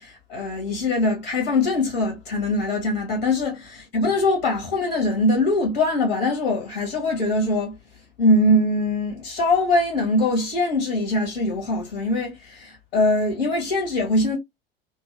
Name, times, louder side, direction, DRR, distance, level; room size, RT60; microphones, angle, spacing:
voice 1, 0.0-14.4, left 2 dB, 75° left, 1.0 m, -22 dB
2.5 x 2.3 x 2.4 m
hypercardioid pair, 80°, 30 cm